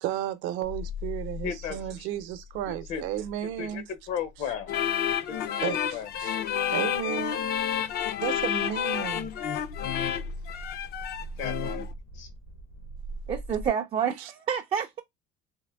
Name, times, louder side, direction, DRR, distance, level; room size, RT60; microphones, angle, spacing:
voice 1, 0.0-3.8 5.6-5.8 6.2-6.3 6.7-7.5 8.2-9.3 14.2-14.3, right 11 dB, 70° right, 0.7 m, -33 dB
sound 1, 0.6-13.7, left 2 dB, 90° left, 1.2 m, -42 dB
voice 2, 1.4-2.1 2.7-3.0 3.4-4.7 5.3-6.1 11.4-11.9 12.1-12.3, left 7 dB, 70° left, 0.8 m, -35 dB
sound 2, 4.7-11.9, left 9 dB, 50° left, 0.4 m, -30 dB
voice 3, 13.3-15.0, right 8 dB, 30° right, 0.3 m, -28 dB
3.5 x 2.5 x 3.3 m
cardioid pair, 145°, 20 cm